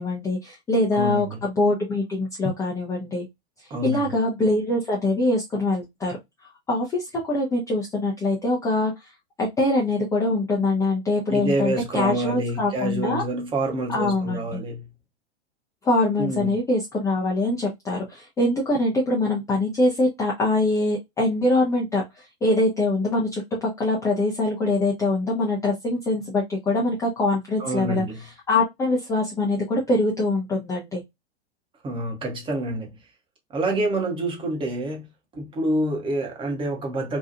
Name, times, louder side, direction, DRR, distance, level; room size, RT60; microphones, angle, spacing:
voice 1, 0.0-3.2 3.8-6.2 6.7-8.9 9.4-13.2 13.9-14.6 15.8-22.0 22.4-28.0 28.5-31.0, left 2 dB, 10° left, 0.5 m, -23 dB
voice 2, 0.9-1.4 3.7-4.1 11.3-14.9 16.2-16.6 27.6-28.2 31.8-33.0 33.5-35.1 35.3-37.2, right 1 dB, 15° right, 0.8 m, -27 dB
2.8 x 2.3 x 2.4 m
figure-of-eight pair, 95°, 34 cm